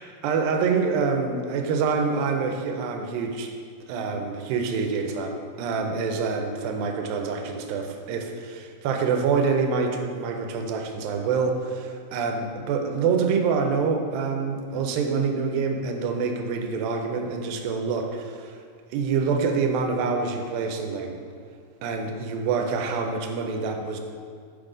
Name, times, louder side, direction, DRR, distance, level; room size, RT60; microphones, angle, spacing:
voice 1, 0.2-3.5 3.9-18.6 18.9-21.2 21.8-24.0, right 5 dB, 85° right, 4 dB, 2.3 m, -26 dB
6.7 x 3.8 x 4.9 m, 2.1 s
omnidirectional pair, 4.1 m